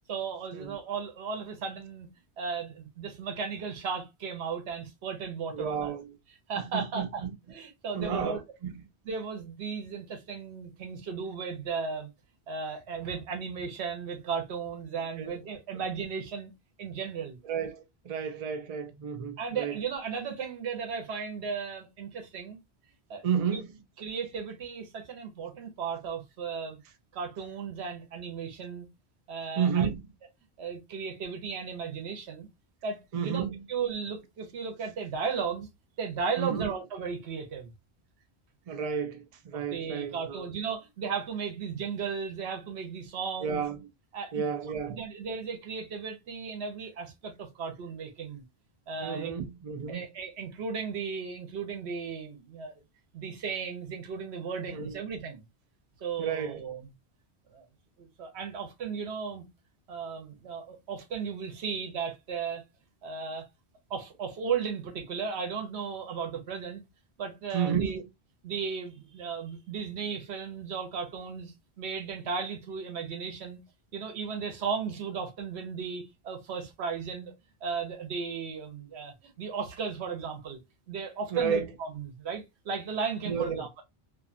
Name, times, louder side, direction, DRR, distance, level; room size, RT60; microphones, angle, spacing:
voice 1, 0.1-2.1 2.4-5.9 6.5-8.4 9.0-12.1 12.5-16.5 16.8-17.4 19.4-22.6 23.1-23.2 24.0-26.8 27.1-28.9 29.3-29.9 30.6-32.5 32.8-33.4 33.7-35.7 36.0-37.7 39.5-43.6 44.1-44.5 44.9-48.4 48.9-49.3 49.9-52.8 53.1-55.4 56.0-56.9 57.5-57.7 58.0-59.4 59.9-62.6 63.0-63.5 63.9-66.8 67.2-68.0 68.4-73.6 73.9-77.3 77.6-80.6 80.9-83.8, right 6 dB, 85° right, 1.0 m, -35 dB
voice 2, 5.5-6.1 6.7-7.3 7.9-8.9 15.2-15.3 17.5-19.7 23.2-23.7 29.6-30.1 33.1-33.5 36.4-36.7 38.7-40.5 43.4-43.8 44.3-45.0 49.0-50.0 54.7-55.0 56.2-56.6 67.5-68.0 81.3-81.7 83.3-83.7, right 7 dB, 50° right, 0.4 m, -31 dB
2.5 x 2.4 x 2.4 m
omnidirectional pair, 1.1 m